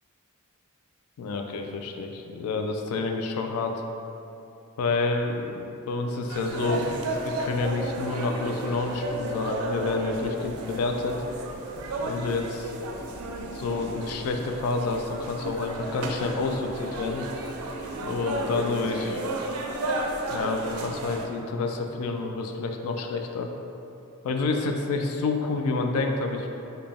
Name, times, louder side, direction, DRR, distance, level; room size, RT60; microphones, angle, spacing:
voice 1, 1.2-3.8 4.8-11.2 12.0-12.7 13.5-17.3 18.0-19.2 20.3-23.5 24.2-26.5, left 3 dB, 80° left, 4 dB, 0.3 m, -29 dB
sound 1, 6.3-21.3, right 2 dB, 80° right, 0.4 m, -33 dB
3.9 x 2.2 x 3.4 m, 2.9 s
head